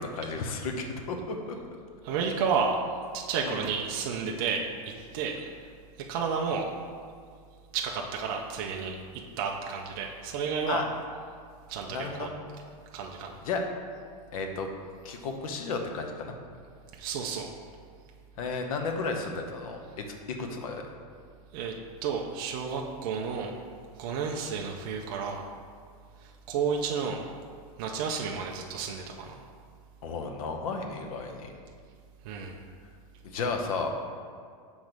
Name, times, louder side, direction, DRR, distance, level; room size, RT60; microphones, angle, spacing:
voice 1, 0.0-1.6 3.4-3.6 10.7-10.8 11.9-12.3 13.4-13.6 14.3-14.7 15.0-16.4 18.4-20.9 30.0-31.5 33.2-33.9, left 4 dB, 65° left, 4 dB, 0.8 m, -33 dB
voice 2, 2.0-2.8 3.1-5.7 6.1-6.7 7.7-10.8 11.7-12.3 12.9-13.4 16.9-17.5 21.5-21.7 22.0-23.5 23.9-25.4 26.2-27.2 27.8-29.4 32.2-32.7, right 6 dB, 35° right, 0 dB, 0.4 m, -31 dB
6.1 x 3.1 x 5.1 m, 2.1 s
supercardioid pair, 165°, 20 cm